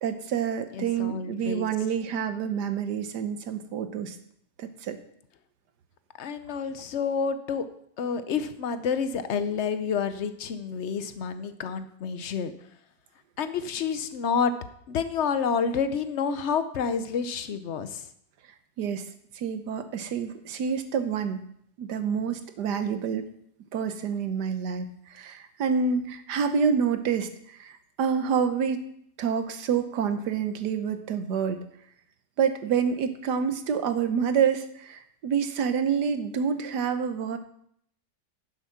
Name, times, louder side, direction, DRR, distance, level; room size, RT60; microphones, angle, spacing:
voice 1, 0.0-4.2 4.6-5.0 18.8-19.0 19.3-21.4 21.8-23.3 23.7-28.9 29.2-31.6 32.4-37.4, right 6 dB, 75° right, 9 dB, 1.5 m, -28 dB
voice 2, 0.7-1.7 6.2-7.7 8.0-12.5 13.4-14.5 14.9-18.0, left 6 dB, 55° left, 11 dB, 0.8 m, -29 dB
10.5 x 7.3 x 5.8 m, 0.69 s
omnidirectional pair, 1.8 m